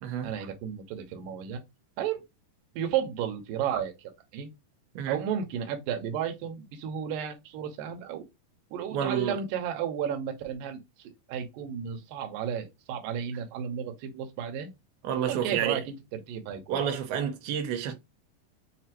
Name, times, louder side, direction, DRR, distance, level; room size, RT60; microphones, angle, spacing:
voice 1, 0.2-1.6 2.0-2.2 2.7-4.5 5.1-8.2 8.7-10.8 11.3-14.7 15.3-16.8, right 8 dB, 75° right, 2.4 m, -33 dB
voice 2, 8.9-9.4 15.0-15.8 16.7-17.9, right 8 dB, 90° right, 2.8 m, -29 dB
6.8 x 2.7 x 2.9 m
omnidirectional pair, 4.4 m